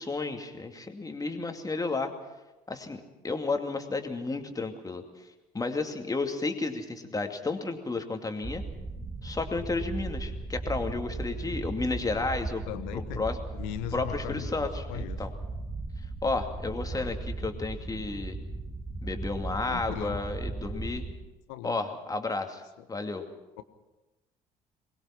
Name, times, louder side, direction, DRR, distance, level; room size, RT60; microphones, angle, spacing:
voice 1, 0.0-2.1 2.7-5.0 5.5-8.6 9.2-12.6 12.9-13.4 13.9-15.3 16.2-17.2 17.4-18.4 19.0-21.1 21.6-22.6 22.9-23.3, left 3 dB, 20° left, 5 dB, 2.5 m, -32 dB
sound 1, 8.4-21.1, right 3 dB, 20° right, 2.8 m, -37 dB
voice 2, 12.7-15.2 16.9-17.1 19.7-20.2 21.5-21.8 22.8-22.9 23.6-23.7, left 13 dB, 65° left, 12 dB, 1.3 m, -39 dB
23.5 x 20.5 x 5.9 m, 1.1 s
figure-of-eight pair, 50°, 19 cm